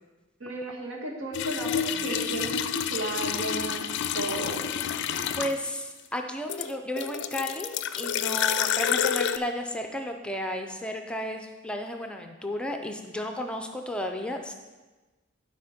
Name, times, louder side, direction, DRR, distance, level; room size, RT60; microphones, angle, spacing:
voice 1, 0.4-3.9 4.1-4.7, right 2 dB, 80° right, 0 dB, 1.5 m, -34 dB
sound 1, 1.3-5.8 6.5-9.4, left 8 dB, 60° left, 0.4 m, -29 dB
voice 2, 5.4-14.5, left 1 dB, 5° left, 4 dB, 0.5 m, -33 dB
11.5 x 5.1 x 4.3 m, 1.2 s
head